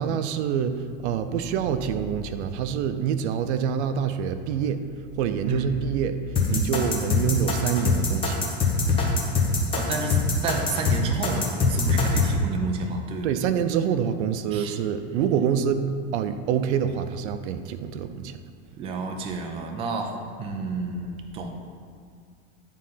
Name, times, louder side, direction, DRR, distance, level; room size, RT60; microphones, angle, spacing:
voice 1, 0.0-4.8 5.1-8.6 13.2-18.4, right 8 dB, 90° right, 10 dB, 0.6 m, -26 dB
sound 1, 6.4-12.3, left 5 dB, 15° left, 0.8 m, -23 dB
voice 2, 9.7-13.3 14.5-14.8 18.8-21.5, right 3 dB, 20° right, 3 dB, 0.4 m, -30 dB
9.9 x 3.7 x 5.6 m, 2.1 s
supercardioid pair, 170°, 33 cm